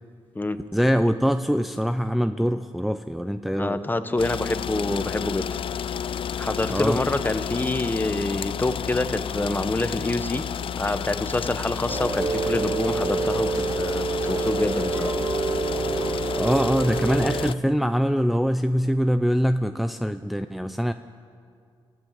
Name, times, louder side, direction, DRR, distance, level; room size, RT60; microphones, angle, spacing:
voice 1, 0.7-3.8 6.7-7.0 16.4-20.9, equal, ahead, 8 dB, 0.7 m, -23 dB
voice 2, 3.6-5.6 6.4-10.4 10.7-15.1, left 2 dB, 20° left, 10 dB, 1.3 m, -26 dB
sound 1, 4.2-17.5, left 8 dB, 65° left, 0.5 m, -31 dB
Rain, 11.9-17.5, right 4 dB, 35° right, 1.0 m, -27 dB
28.5 x 15.0 x 7.6 m, 2.3 s
cardioid pair, 70°, 9 cm